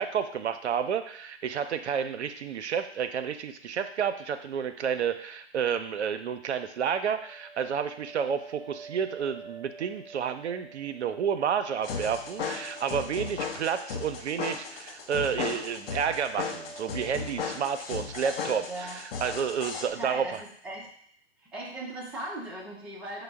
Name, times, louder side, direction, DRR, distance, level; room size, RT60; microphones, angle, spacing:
voice 1, 0.0-20.2, right 7 dB, 80° right, 9 dB, 0.5 m, -30 dB
sound 1, 6.8-14.6 14.9-15.5 15.8-17.5, right 4 dB, 15° left, 1.0 m, -49 dB
sound 2, 11.8-19.8, left 6 dB, 55° left, 0.7 m, -36 dB
voice 2, 18.7-19.0 19.9-20.9 21.4-23.2, right 1 dB, 5° right, -6 dB, 0.4 m, -38 dB
5.1 x 2.0 x 3.4 m, 0.64 s
hypercardioid pair, 125°, 34 cm